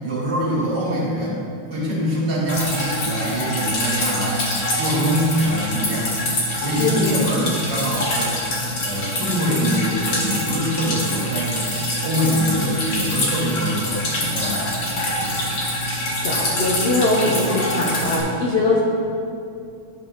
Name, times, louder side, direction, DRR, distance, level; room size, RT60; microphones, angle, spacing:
voice 1, 0.0-1.4 1.7-4.5 4.8-6.1 6.6-8.4 8.8-11.7 12.0-15.4, equal, 60° right, -7 dB, 2.5 m, -24 dB
Drip, 2.5-18.2, left 1 dB, 60° left, 1.9 m, -25 dB
voice 2, 16.2-18.8, left 2 dB, 85° left, -5 dB, 0.5 m, -21 dB
11.0 x 3.9 x 3.7 m, 2.5 s
omnidirectional pair, 2.3 m